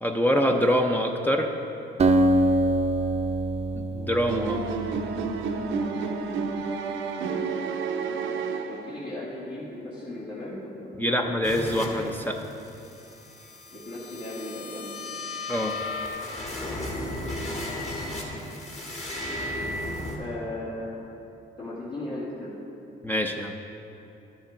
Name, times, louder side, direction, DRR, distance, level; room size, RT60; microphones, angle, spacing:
voice 1, 0.0-1.5 3.7-4.6 11.0-12.5 15.5-15.8 23.0-23.6, equal, 10° left, 2 dB, 0.6 m, -25 dB
Acoustic guitar, 2.0-5.6, right 1 dB, 30° right, 0.6 m, -24 dB
sound 1, 4.3-9.2, right 5 dB, 80° right, 0.7 m, -30 dB
voice 2, 7.6-11.4 13.7-15.0 20.2-21.0 21.6-22.6, left 1 dB, 55° left, -10 dB, 2.3 m, -37 dB
sound 2, 11.4-20.2, left 2 dB, 35° left, 1.8 m, -35 dB
12.5 x 7.1 x 3.8 m, 2.8 s
cardioid pair, 90°, 20 cm